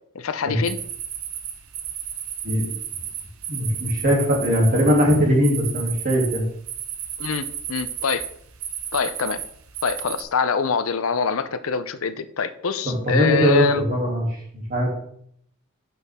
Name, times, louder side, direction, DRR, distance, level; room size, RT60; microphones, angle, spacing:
voice 1, 0.1-0.8 7.2-8.3 8.9-9.4 9.8-13.8, left 5 dB, 75° left, 12 dB, 0.6 m, -24 dB
sound 1, 0.6-10.2, right 9 dB, 90° right, 1.1 m, -33 dB
voice 2, 3.5-6.4 12.8-14.9, equal, 45° right, -2 dB, 2.8 m, -20 dB
9.7 x 6.0 x 3.6 m, 0.66 s
head